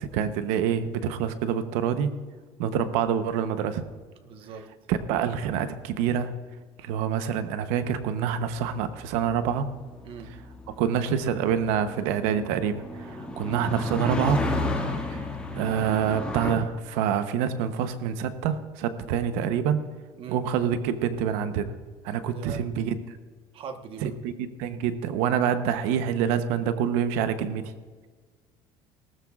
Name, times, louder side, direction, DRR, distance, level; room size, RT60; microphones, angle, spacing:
voice 1, 0.0-2.1 2.6-3.8 4.9-6.3 6.8-9.7 10.7-14.5 15.1-15.2 15.6-19.8 20.3-21.7 22.0-23.2 24.0-27.7, right 8 dB, 85° right, 10 dB, 0.9 m, -26 dB
voice 2, 4.2-4.7 10.0-10.3 20.1-20.4 22.3-22.6 23.5-24.1, right 6 dB, 50° right, 7 dB, 1.2 m, -40 dB
sound 1, 8.0-16.5, left 2 dB, 10° left, 1.9 m, -33 dB
18.5 x 13.0 x 2.4 m, 1.5 s
cardioid pair, 130°, 12 cm